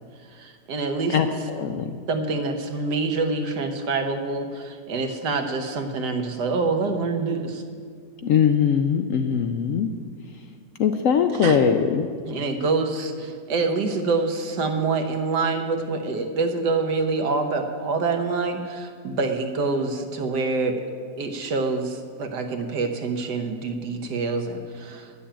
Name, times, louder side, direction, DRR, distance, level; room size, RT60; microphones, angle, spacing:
voice 1, 0.3-1.2 2.1-7.6 11.4-11.6 12.2-20.8 21.2-25.2, right 3 dB, 80° right, 5 dB, 1.6 m, -26 dB
voice 2, 1.6-1.9 8.2-9.9 10.8-12.1, left 7 dB, 70° left, 7 dB, 0.8 m, -21 dB
10.0 x 7.0 x 8.7 m, 2.1 s
omnidirectional pair, 1.8 m